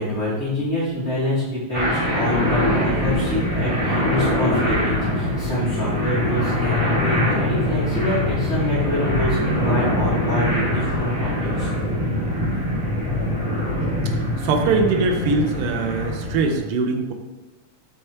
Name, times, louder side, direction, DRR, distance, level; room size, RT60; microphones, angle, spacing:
voice 1, 0.0-11.7, left 1 dB, 25° left, -10 dB, 1.9 m, -26 dB
sound 1, 1.7-16.6, left 1 dB, 30° right, 2.4 m, -23 dB
voice 2, 14.4-17.1, right 4 dB, 80° right, 3 dB, 1.3 m, -22 dB
6.9 x 3.5 x 4.2 m, 1.1 s
omnidirectional pair, 3.3 m